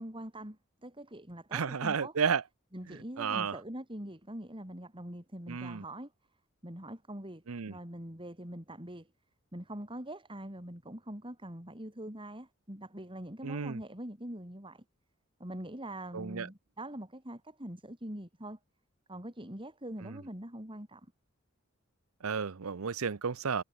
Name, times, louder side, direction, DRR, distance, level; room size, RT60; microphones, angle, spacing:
voice 1, 0.0-2.2 2.7-6.1 6.6-9.1 9.5-14.8 15.4-18.6 19.1-21.1, right 1 dB, 25° right, 5.8 m, -43 dB
voice 2, 1.5-2.4 3.2-3.5 5.5-5.8 7.5-7.7 13.4-13.8 16.1-16.5 22.2-23.6, right 6 dB, 85° right, 0.7 m, -32 dB
head